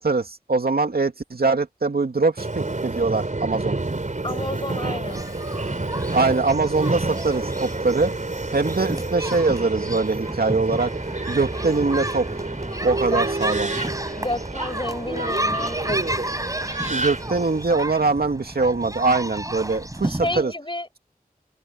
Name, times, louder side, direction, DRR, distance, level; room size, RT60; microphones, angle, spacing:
voice 1, 0.0-3.8 6.1-8.1 8.5-10.9 11.3-12.3 12.8-13.7 16.9-20.5, right 3 dB, 90° right, 2.6 m, -22 dB
Subway metro underground, 2.4-17.6, right 2 dB, 55° right, 4.1 m, -29 dB
voice 2, 4.2-5.3 13.1-13.2 14.2-16.0 20.0-20.9, left 1 dB, 30° left, 7.2 m, -30 dB
sound 1, 5.1-20.4, right 1 dB, 20° right, 4.6 m, -31 dB
open air
wide cardioid pair, 55°, 15 cm